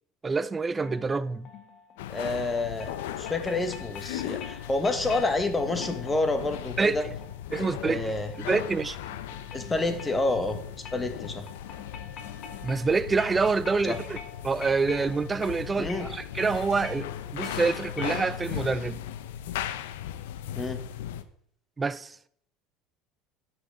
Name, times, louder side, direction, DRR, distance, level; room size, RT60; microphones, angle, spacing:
voice 1, 0.2-1.5 6.8-7.0 7.5-8.1 8.4-9.0 12.6-14.2 14.4-19.0 21.8-22.1, right 4 dB, 20° right, 0.6 m, -27 dB
sound 1, 0.8-18.7, left 5 dB, 50° left, 1.7 m, -46 dB
sound 2, 2.0-21.2, left 11 dB, 85° left, 0.7 m, -38 dB
voice 2, 2.1-7.0 7.6-8.3 9.5-11.5 13.8-14.0 15.8-16.1 20.5-20.8, left 2 dB, 15° left, 1.5 m, -29 dB
12.5 x 6.2 x 5.0 m
supercardioid pair, 95°, 0 cm